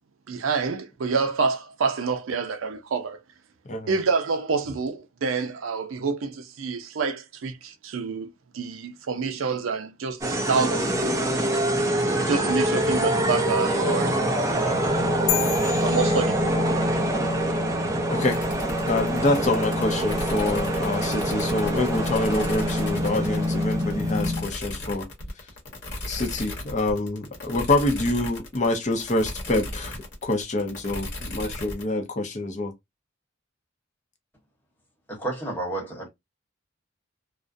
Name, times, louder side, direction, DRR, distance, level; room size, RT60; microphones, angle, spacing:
voice 1, 0.3-3.2 3.9-11.1 12.3-14.8 15.8-16.4, right 4 dB, 80° right, 0.5 m, -27 dB
sound 1, 10.2-24.5, equal, 15° right, 0.4 m, -25 dB
sound 2, 15.3-17.0, left 12 dB, 90° left, 0.4 m, -31 dB
voice 2, 18.1-18.4 18.9-25.1 26.1-30.0 30.2-32.7, left 2 dB, 35° left, 0.6 m, -26 dB
sound 3, 18.3-31.8, left 1 dB, 55° left, 1.0 m, -37 dB
voice 3, 35.1-36.1, right 2 dB, 10° left, 1.0 m, -31 dB
2.3 x 2.1 x 2.5 m
head